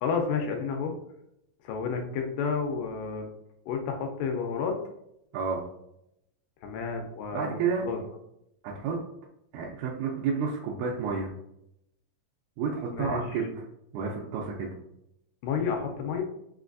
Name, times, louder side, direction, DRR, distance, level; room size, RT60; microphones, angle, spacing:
voice 1, 0.0-0.9 1.6-3.3 3.7-4.8 6.6-8.0 12.9-13.2 15.4-16.2, left 5 dB, 80° left, 4 dB, 2.1 m, -30 dB
voice 2, 7.3-7.9 8.6-9.0 9.5-11.3 12.6-13.5 13.9-14.7, right 5 dB, 80° right, -3 dB, 1.8 m, -30 dB
5.2 x 3.2 x 2.5 m, 0.79 s
omnidirectional pair, 4.0 m